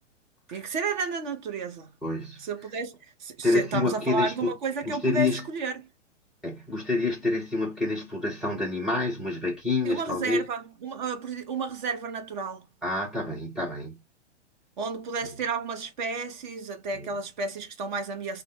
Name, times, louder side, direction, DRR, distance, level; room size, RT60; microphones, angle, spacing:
voice 1, 0.5-1.9 2.4-5.9 9.8-12.7 14.8-18.4, right 4 dB, 40° right, 0.7 m, -32 dB
voice 2, 2.0-2.4 3.4-4.5 4.8-5.5 6.4-10.4 12.8-14.0 16.9-17.1, left 3 dB, ahead, 0.3 m, -28 dB
2.0 x 2.0 x 3.1 m
figure-of-eight pair, 110°, 37 cm